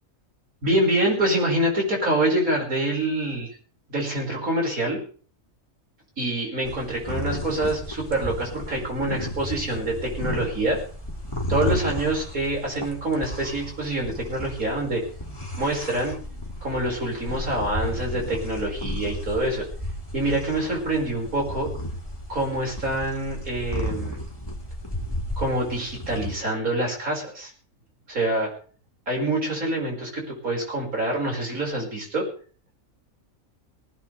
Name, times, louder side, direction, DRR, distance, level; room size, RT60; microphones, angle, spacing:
voice 1, 0.6-3.5 3.9-5.0 6.2-10.8 11.5-15.0 15.6-16.1 16.6-19.6 20.1-21.7 22.3-24.2 25.4-27.5 28.1-28.5 29.1-32.2, right 1 dB, 80° right, -1 dB, 6.3 m, -26 dB
sound 1, 6.6-26.3, left 1 dB, 15° left, 2.7 m, -33 dB
19.0 x 17.0 x 3.5 m, 0.43 s
omnidirectional pair, 1.5 m